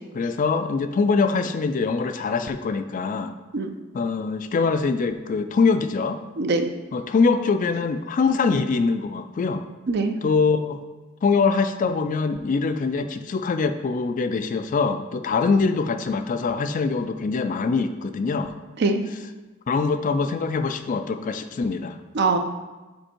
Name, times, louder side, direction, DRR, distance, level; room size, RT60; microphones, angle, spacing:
voice 1, 0.1-3.3 3.9-6.2 6.9-9.7 10.2-10.8 11.2-18.5 19.7-22.0, left 4 dB, 40° left, 9 dB, 0.3 m, -23 dB
voice 2, 6.4-6.7 9.9-10.2 18.8-19.0 22.1-22.4, right 3 dB, 50° right, 7 dB, 0.5 m, -22 dB
5.3 x 4.4 x 4.4 m, 1.2 s
head